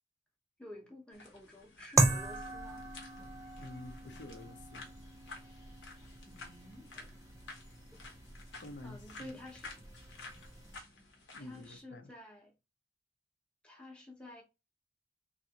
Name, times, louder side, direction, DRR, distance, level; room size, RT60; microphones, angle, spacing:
voice 1, 0.6-2.9 6.3-7.3 8.8-9.7 11.4-12.5 13.6-14.4, left 1 dB, 5° left, 0.8 m, -51 dB
sound 1, 1.1-11.8, left 3 dB, 80° left, 1.0 m, -53 dB
sound 2, 2.0-10.8, right 2 dB, 15° right, 0.4 m, -37 dB
voice 2, 3.6-4.9 8.6-9.4 11.3-12.1, left 2 dB, 65° left, 0.6 m, -49 dB
3.3 x 2.6 x 2.8 m
head